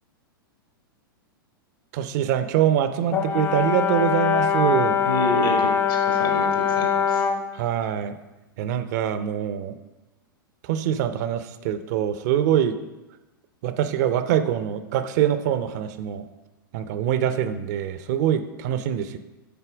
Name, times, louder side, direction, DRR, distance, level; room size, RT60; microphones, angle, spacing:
voice 1, 1.9-5.0 7.5-8.2 8.6-9.7 10.6-12.8 13.6-16.2 16.7-19.2, right 10 dB, 50° right, 11 dB, 0.5 m, -24 dB
Brass instrument, 3.1-7.5, left 7 dB, 20° left, 0.4 m, -22 dB
voice 2, 5.0-7.2, left 1 dB, 70° left, 2 dB, 1.7 m, -29 dB
6.9 x 4.3 x 4.9 m, 1.1 s
figure-of-eight pair, 100°, 12 cm